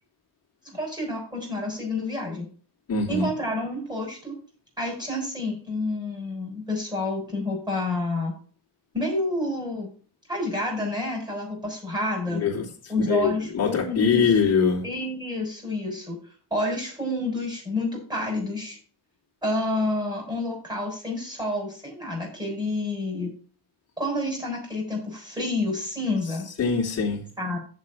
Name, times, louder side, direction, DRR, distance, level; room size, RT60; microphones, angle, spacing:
voice 1, 0.6-2.5 3.1-4.3 4.8-8.4 8.9-9.9 10.3-12.4 12.9-14.2 14.8-16.2 16.5-18.8 19.4-23.3 24.0-26.5 27.4-27.6, left 2 dB, 10° right, -1 dB, 6.3 m, -29 dB
voice 2, 2.9-3.3 12.4-12.6 13.1-14.8 26.6-27.2, left 5 dB, 35° left, -1 dB, 3.2 m, -23 dB
7.5 x 7.5 x 6.1 m, 0.42 s
cardioid pair, 135°, 42 cm